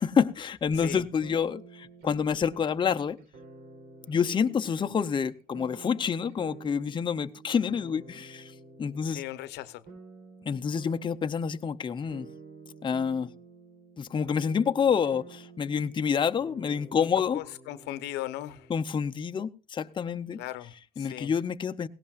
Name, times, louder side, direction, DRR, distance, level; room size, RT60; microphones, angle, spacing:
voice 1, 0.0-3.2 4.1-8.5 8.8-9.2 10.5-12.3 12.8-13.3 14.0-17.4 18.7-20.4 21.0-21.9, left 6 dB, 30° left, 0.7 m, -28 dB
sound 1, 1.2-19.0, right 4 dB, 70° right, 4.0 m, -50 dB
voice 2, 9.0-9.8 16.9-17.1 17.3-18.7 20.4-21.3, left 14 dB, 90° left, 0.9 m, -38 dB
18.0 x 17.0 x 2.4 m
cardioid pair, 110°, 17 cm